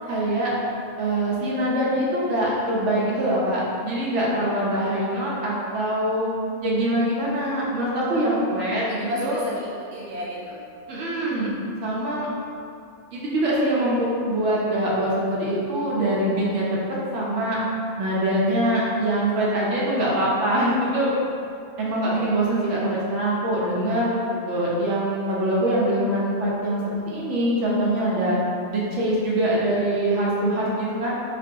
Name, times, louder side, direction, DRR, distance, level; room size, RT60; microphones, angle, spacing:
voice 1, 0.1-0.5 1.0-6.3 6.6-9.4 10.9-11.5 11.8-12.3 13.1-16.7 17.1-17.6 18.0-21.1 21.8-28.4 28.7-31.1, right 1 dB, 90° right, -6 dB, 0.9 m, -23 dB
voice 2, 8.9-10.6, equal, 50° right, -7 dB, 0.6 m, -33 dB
2.5 x 2.2 x 2.6 m, 2.5 s
omnidirectional pair, 1.2 m